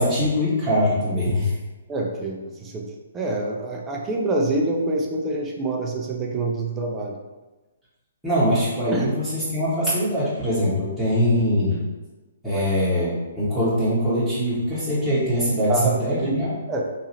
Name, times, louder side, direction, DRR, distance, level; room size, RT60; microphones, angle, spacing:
voice 1, 0.0-1.5 8.2-11.8 12.4-16.6, equal, ahead, -14 dB, 0.9 m, -22 dB
voice 2, 1.9-7.2 8.9-9.2 12.5-12.6 15.7-16.3 16.7-16.8, right 2 dB, 15° right, -1 dB, 0.5 m, -26 dB
3.0 x 2.3 x 2.8 m, 1.2 s
figure-of-eight pair, 125°, 0 cm